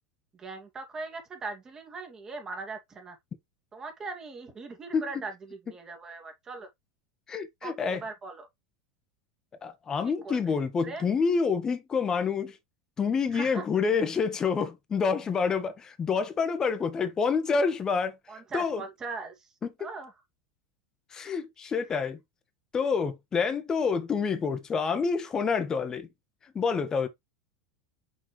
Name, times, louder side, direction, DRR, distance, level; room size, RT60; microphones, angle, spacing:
voice 1, 0.3-3.2 3.7-6.7 7.6-8.5 10.0-11.1 13.3-13.6 18.3-19.5 19.8-20.1, right 3 dB, 25° right, 2.5 m, -40 dB
voice 2, 7.3-8.0 9.6-12.6 13.0-18.2 18.5-18.8 19.6-19.7 21.1-22.2 22.7-26.1 26.5-27.1, left 5 dB, 25° left, 1.4 m, -27 dB
6.4 x 4.6 x 3.3 m
hypercardioid pair, 100°, 2 cm